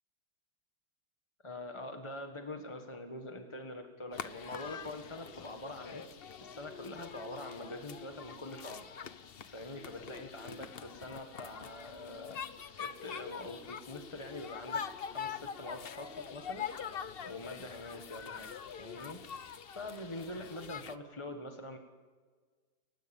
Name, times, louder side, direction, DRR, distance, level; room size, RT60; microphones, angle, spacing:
voice 1, 1.4-6.0 6.4-8.8 9.5-12.4 12.8-14.8 15.1-16.7 17.2-18.5 18.8-19.2 19.7-21.8, left 1 dB, 15° left, 5 dB, 1.4 m, -44 dB
sound 1, 4.1-20.9, left 7 dB, 65° left, 0.5 m, -44 dB
29.5 x 16.0 x 7.1 m, 1.5 s
omnidirectional pair, 2.1 m